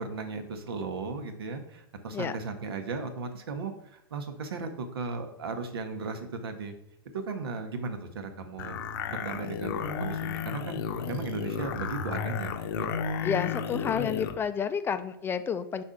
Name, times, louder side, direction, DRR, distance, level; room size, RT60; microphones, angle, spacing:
voice 1, 0.0-6.7 7.1-8.8 9.1-12.9, right 4 dB, 85° right, 7 dB, 1.0 m, -36 dB
sound 1, 8.6-14.4, left 6 dB, 65° left, 0.7 m, -33 dB
voice 2, 13.2-15.8, left 7 dB, 20° left, 11 dB, 0.3 m, -30 dB
6.1 x 4.2 x 3.7 m, 0.80 s
hypercardioid pair, 120°, 12 cm